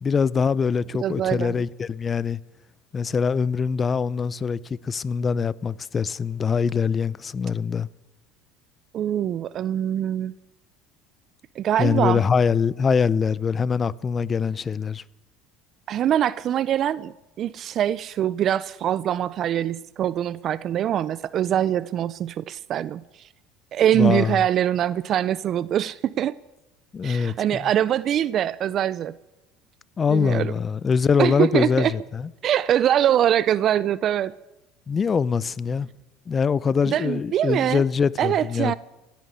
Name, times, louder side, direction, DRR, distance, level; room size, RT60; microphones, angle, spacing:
voice 1, 0.0-2.4 2.9-7.9 11.8-15.0 23.9-24.4 26.9-27.7 30.0-32.3 34.9-35.9 36.3-38.7, left 6 dB, 30° left, 0.5 m, -23 dB
voice 2, 1.0-1.5 8.9-10.3 11.6-12.2 15.9-23.0 23.7-26.3 27.0-29.1 30.1-30.5 31.2-31.9 32.4-34.3 36.9-37.8 38.2-38.7, right 10 dB, 50° right, 0.4 m, -23 dB
17.0 x 10.5 x 7.9 m
supercardioid pair, 100°, 0 cm